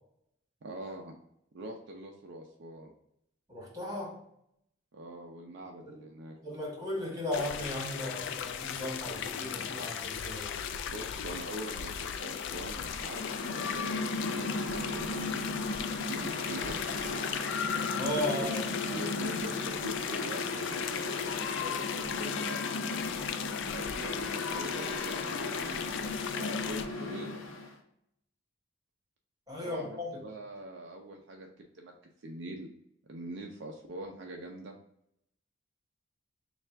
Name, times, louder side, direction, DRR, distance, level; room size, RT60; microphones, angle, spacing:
voice 1, 0.6-1.2 1.5-2.9 4.9-6.4 10.9-17.4 18.1-23.0 23.7-25.8 26.3-27.4 29.6-31.5 31.7-31.9 32.2-32.7 33.1-34.7, right 1 dB, 60° right, 1 dB, 0.5 m, -43 dB
voice 2, 3.5-4.2 5.8-6.0 6.4-10.5 17.9-18.6 29.5-30.2, left 1 dB, 15° right, -4 dB, 1.5 m, -36 dB
sound 1, 7.3-26.9, left 8 dB, 65° left, 0.3 m, -36 dB
sound 2, 8.8-19.7, left 2 dB, 30° left, 1.1 m, -50 dB
Mechanical fan, 12.9-27.7, left 2 dB, 80° left, 0.7 m, -37 dB
3.3 x 2.4 x 4.4 m, 0.75 s
head